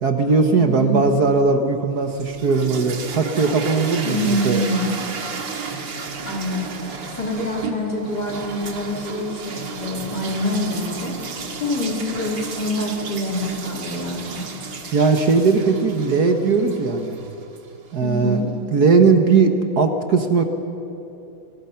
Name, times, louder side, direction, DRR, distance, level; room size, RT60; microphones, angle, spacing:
voice 1, 0.0-4.6 14.9-17.2 17.9-18.4 18.7-20.4, right 4 dB, 55° right, 6 dB, 1.7 m, -18 dB
voice 2, 0.6-1.0 4.0-5.2 6.3-11.3 11.6-14.4 18.0-18.5, left 1 dB, 55° left, -2 dB, 4.2 m, -26 dB
sound 1, 2.0-18.0, right 5 dB, 70° right, 2.4 m, -33 dB
28.5 x 20.5 x 5.8 m, 2.8 s
omnidirectional pair, 2.1 m